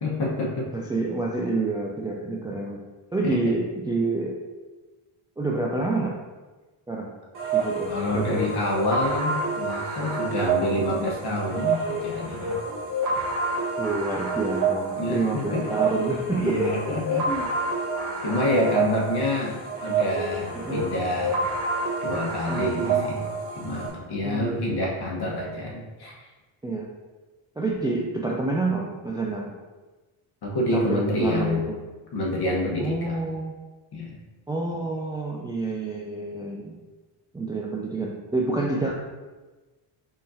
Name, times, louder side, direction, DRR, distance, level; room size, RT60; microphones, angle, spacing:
voice 1, 0.0-0.7 3.2-3.4 7.9-12.6 15.0-15.7 16.4-17.3 18.2-21.4 22.0-23.3 23.5-26.3 30.4-31.6 32.1-33.2 33.9-34.2, left 1 dB, 50° left, -2 dB, 1.3 m, -27 dB
voice 2, 0.7-2.8 3.1-4.4 5.4-6.2 6.9-7.1 7.5-8.4 13.8-16.7 17.2-17.5 18.3-18.4 20.5-20.8 22.5-23.0 24.2-24.8 26.6-26.9 27.6-29.5 30.7-31.8 32.8-33.5 34.5-36.8 37.3-38.9, right 3 dB, 10° right, -2 dB, 0.3 m, -28 dB
sound 1, 7.3-23.9, right 3 dB, 40° right, 1.5 m, -28 dB
4.2 x 3.8 x 2.7 m, 1.2 s
cardioid pair, 90°, 50 cm